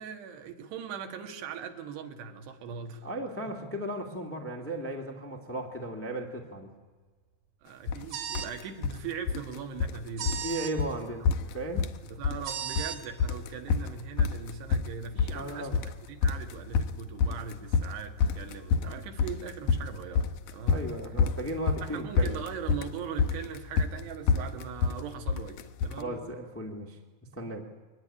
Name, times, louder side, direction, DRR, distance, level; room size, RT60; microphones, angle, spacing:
voice 1, 0.0-3.1 3.5-3.6 7.6-10.4 11.2-11.3 12.0-20.9 21.8-26.2, right 7 dB, 85° right, 6 dB, 3.7 m, -40 dB
voice 2, 3.0-6.8 10.4-11.9 15.3-15.8 20.7-22.3 26.0-27.0 27.3-27.7, right 1 dB, 20° left, 1 dB, 0.3 m, -36 dB
sound 1, 7.9-8.1 8.4-9.0 9.3-10.0 10.3-10.5 10.8-10.9 11.3-12.0 12.2-12.9 13.2-26.0, left 5 dB, 75° left, 1.9 m, -28 dB
sound 2, 8.1-8.5 10.2-10.7 12.4-13.0, right 9 dB, 65° right, 3.5 m, -35 dB
22.5 x 19.0 x 9.9 m, 1.4 s
omnidirectional pair, 4.7 m